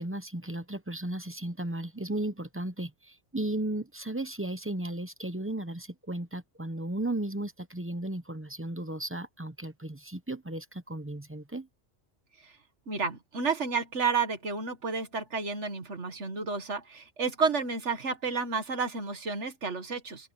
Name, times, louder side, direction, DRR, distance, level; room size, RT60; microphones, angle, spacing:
voice 1, 0.0-11.7, right 1 dB, 15° right, 0.8 m, -35 dB
voice 2, 12.9-20.3, right 4 dB, 75° right, 2.1 m, -31 dB
omnidirectional pair, 1.2 m